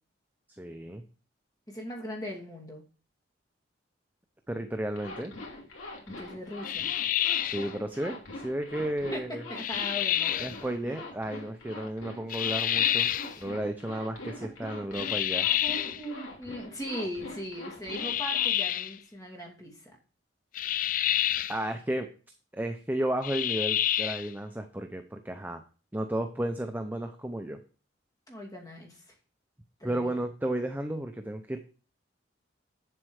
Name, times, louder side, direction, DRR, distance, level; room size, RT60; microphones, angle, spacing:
voice 1, 0.6-1.0 4.5-5.3 7.4-8.2 8.4-9.4 10.4-13.1 13.4-15.5 21.5-22.1 22.5-25.6 25.9-27.6 29.8-31.6, right 1 dB, 10° right, 6 dB, 0.6 m, -33 dB
voice 2, 1.7-2.8 6.1-6.9 9.1-11.0 13.1-13.4 15.6-20.0 28.3-29.0 29.8-30.2, equal, 20° left, 1 dB, 2.5 m, -39 dB
Zipper (clothing), 4.9-18.5, left 2 dB, 90° left, 3.0 m, -43 dB
sound 1, 6.6-7.7 9.6-10.6 12.3-13.3 14.9-16.0 17.9-18.9 20.5-21.6 23.2-24.3, left 11 dB, 45° left, 0.3 m, -28 dB
7.7 x 7.5 x 4.8 m, 0.38 s
head